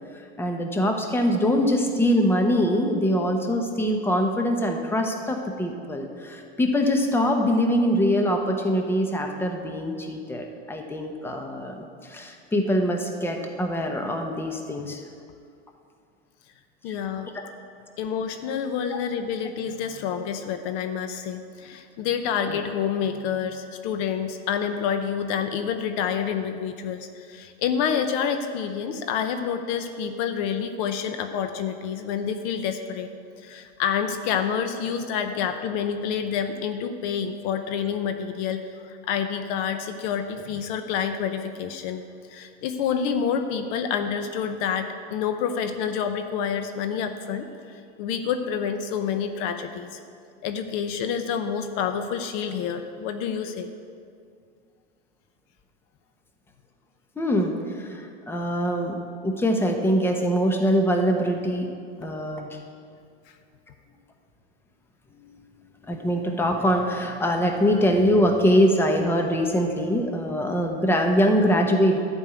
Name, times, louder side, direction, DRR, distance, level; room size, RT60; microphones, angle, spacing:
voice 1, 0.4-15.0 57.2-59.0 59.2-61.7 62.0-62.5 65.8-72.0, equal, 5° left, 3 dB, 1.0 m, -23 dB
voice 2, 16.8-17.3 18.0-33.1 33.4-42.0 42.3-47.5 48.0-50.0 50.4-53.7, left 7 dB, 55° left, 8 dB, 0.8 m, -28 dB
11.0 x 5.5 x 8.3 m, 2.3 s
supercardioid pair, 125°, 33 cm